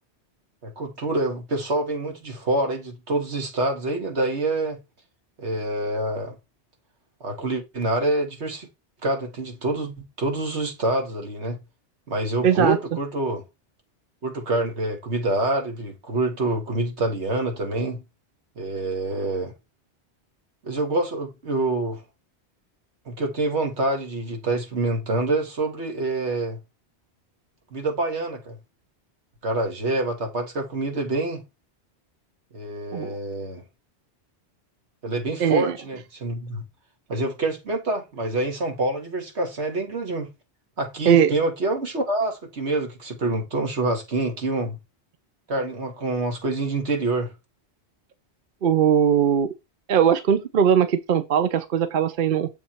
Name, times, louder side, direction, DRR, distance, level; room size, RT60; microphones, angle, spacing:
voice 1, 0.6-4.8 5.4-6.3 7.2-8.7 9.0-11.6 12.1-13.4 14.2-18.0 18.6-19.5 20.6-22.0 23.1-26.6 27.7-28.6 29.4-31.4 32.5-33.6 35.0-36.6 37.1-40.3 40.8-44.8 45.5-47.3, right 2 dB, 75° right, 2.2 m, -26 dB
voice 2, 12.4-12.8 32.9-33.2 35.4-35.7 41.0-41.3 48.6-49.5 49.9-52.5, right 8 dB, 55° right, 0.8 m, -20 dB
7.3 x 3.7 x 4.4 m
omnidirectional pair, 1.1 m